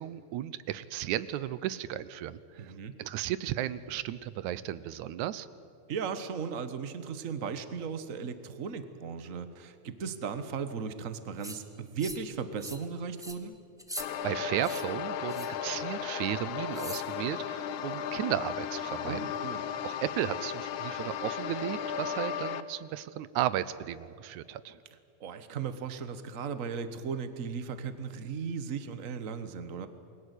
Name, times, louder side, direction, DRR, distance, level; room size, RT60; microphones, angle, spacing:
voice 1, 0.0-2.7 3.0-5.5 14.2-19.3 19.8-24.8, right 12 dB, 80° right, 16 dB, 2.2 m, -34 dB
voice 2, 2.6-2.9 5.9-13.5 19.0-19.6 25.2-29.9, right 6 dB, 45° right, 10 dB, 1.0 m, -36 dB
sound 1, 11.4-11.6 12.0-12.3 12.6-12.9 13.2-13.4 13.8-14.1 14.6-14.8 15.3-15.6 16.7-17.1, equal, 5° right, 0.6 m, -42 dB
sound 2, 14.0-22.6, left 8 dB, 80° left, 2.3 m, -35 dB
29.0 x 21.5 x 8.3 m, 2.4 s
omnidirectional pair, 3.4 m